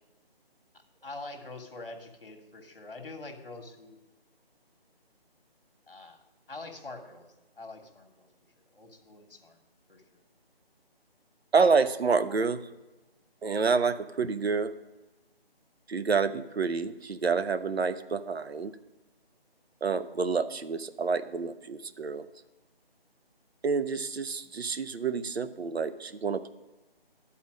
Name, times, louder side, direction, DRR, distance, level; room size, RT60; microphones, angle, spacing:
voice 1, 1.0-4.0 5.9-6.2 6.5-7.3 7.6-8.3 8.7-9.6 9.9-10.2, left 2 dB, 60° left, 5 dB, 1.4 m, -44 dB
voice 2, 11.5-12.6 13.4-14.7 15.9-18.7 19.8-22.3 23.6-26.5, right 5 dB, 80° right, 11 dB, 0.7 m, -28 dB
11.5 x 4.2 x 6.3 m, 1.1 s
figure-of-eight pair, 180°, 31 cm